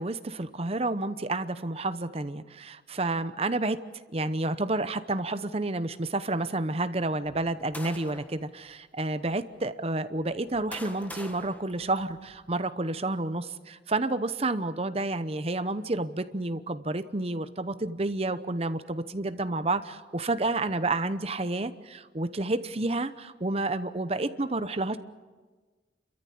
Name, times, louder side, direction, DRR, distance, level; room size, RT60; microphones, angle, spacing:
voice 1, 0.0-3.8 4.1-25.0, right 2 dB, 35° right, 11 dB, 0.9 m, -30 dB
sound 1, 7.2-8.4 9.2-9.3 10.2-12.5, left 1 dB, 10° left, 1.3 m, -45 dB
30.0 x 14.0 x 8.6 m, 1.4 s
head